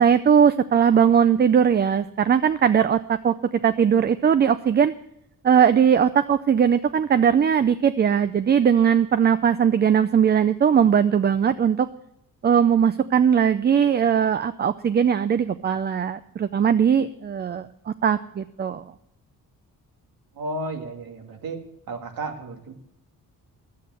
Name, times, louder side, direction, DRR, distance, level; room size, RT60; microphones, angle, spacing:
voice 1, 0.0-3.3 3.6-4.9 5.4-11.9 12.4-18.8, right 8 dB, 30° right, 13 dB, 0.4 m, -19 dB
voice 2, 20.4-21.6 21.9-22.7, right 2 dB, 75° right, 4 dB, 2.4 m, -32 dB
11.5 x 8.5 x 7.6 m, 0.77 s
wide cardioid pair, 145°, 36 cm